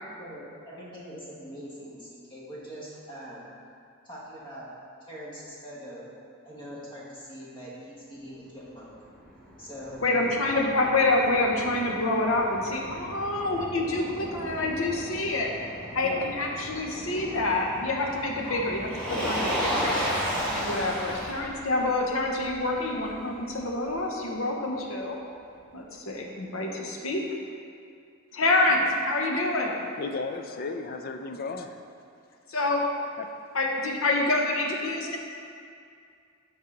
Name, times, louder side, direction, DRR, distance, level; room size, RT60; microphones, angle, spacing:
voice 1, 0.0-3.5 4.0-4.7 5.1-6.1 6.4-8.9 9.6-10.7 16.0-16.3, equal, 25° left, -6 dB, 1.5 m, -42 dB
Motor vehicle (road), 8.9-23.9, equal, 5° left, 1.5 m, -35 dB
voice 2, 10.0-15.5 15.9-20.0 20.5-25.2 25.7-27.2 28.3-29.8 32.5-32.8 33.5-35.2, left 2 dB, 70° left, 0 dB, 0.9 m, -27 dB
voice 3, 30.0-31.8 33.2-33.3, left 3 dB, 45° left, 6 dB, 0.4 m, -34 dB
8.4 x 4.7 x 3.9 m, 2.3 s
head